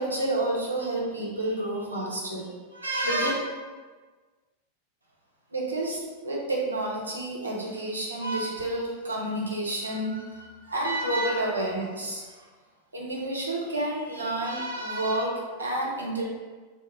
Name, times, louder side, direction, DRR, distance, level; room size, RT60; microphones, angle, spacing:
voice 1, 0.0-3.3 5.5-12.2 12.9-16.2, right 1 dB, 80° right, -3 dB, 0.5 m, -29 dB
2.1 x 2.1 x 2.9 m, 1.4 s
figure-of-eight pair, 90°, 0 cm